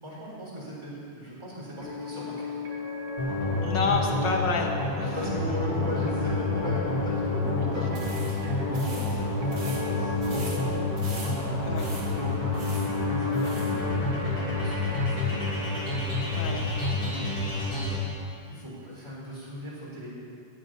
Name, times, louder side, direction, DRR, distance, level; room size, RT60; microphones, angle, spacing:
voice 1, 0.0-2.6 5.1-10.7 11.1-15.6 18.4-20.1, equal, 10° right, -7 dB, 3.8 m, -38 dB
sound 1, 1.7-18.1, left 4 dB, 80° right, 4.8 m, -35 dB
sound 2, 3.2-17.9, left 2 dB, 35° left, 4.2 m, -29 dB
voice 2, 3.6-5.2 11.7-11.9 16.3-16.7, left 4 dB, 80° left, 1 dB, 1.0 m, -29 dB
sound 3, 7.9-13.8, right 2 dB, 35° right, 2.8 m, -44 dB
11.0 x 7.6 x 9.3 m, 2.4 s
omnidirectional pair, 3.4 m